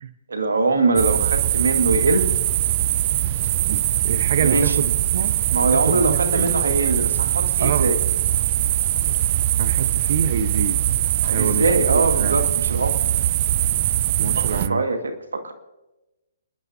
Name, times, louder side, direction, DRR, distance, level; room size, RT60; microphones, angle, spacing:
voice 1, 0.3-2.3 4.4-4.8 5.5-8.0 11.2-13.0 14.4-15.5, right 3 dB, 90° right, 5 dB, 2.0 m, -22 dB
sound 1, 1.0-14.7, right 13 dB, 40° right, 0.4 m, -21 dB
voice 2, 4.0-5.3 5.7-6.5 7.6-7.9 9.6-10.8 11.3-12.5 14.2-14.8, right 6 dB, 55° right, 9 dB, 1.0 m, -26 dB
29.0 x 10.5 x 2.8 m, 1.0 s
hypercardioid pair, 145°, 0 cm